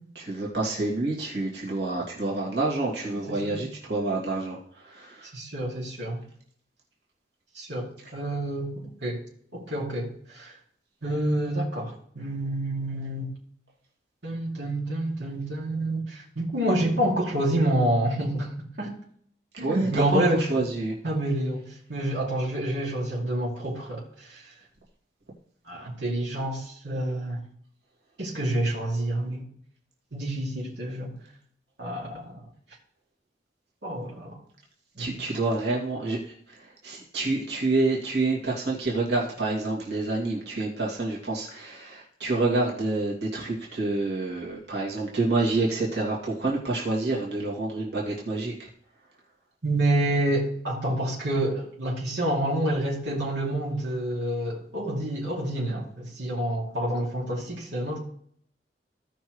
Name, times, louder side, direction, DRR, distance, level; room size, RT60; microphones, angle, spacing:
voice 1, 0.1-4.6 4.9-5.3 19.6-20.2 20.5-20.9 35.0-36.2 36.8-48.7, right 2 dB, 65° right, -4 dB, 2.6 m, -28 dB
voice 2, 3.1-3.7 5.3-6.2 7.5-9.2 9.5-10.5 11.0-13.3 14.2-18.9 19.6-20.5 21.0-21.6 21.9-24.4 25.7-27.4 28.2-29.5 30.1-31.1 31.8-32.4 33.8-34.4 35.0-35.2 49.6-58.0, right 1 dB, 85° right, -4 dB, 2.6 m, -28 dB
16.0 x 5.8 x 3.2 m, 0.63 s
head